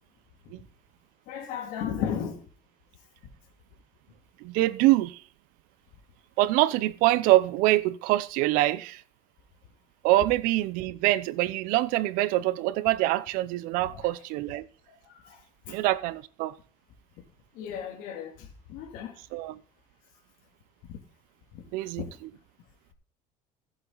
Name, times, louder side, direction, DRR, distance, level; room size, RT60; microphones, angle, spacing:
voice 1, 1.3-2.4 13.9-14.0 15.1-15.4 15.7-15.8 17.5-19.1 20.9-21.0 21.5-21.6 22.0-22.1, left 8 dB, 75° left, 2.7 m, -35 dB
voice 2, 4.4-5.2 6.4-9.0 10.0-14.7 15.7-16.5 19.3-19.6 21.7-22.3, right 17 dB, 80° right, 0.7 m, -25 dB
15.0 x 7.6 x 4.0 m
cardioid pair, 170°, 14 cm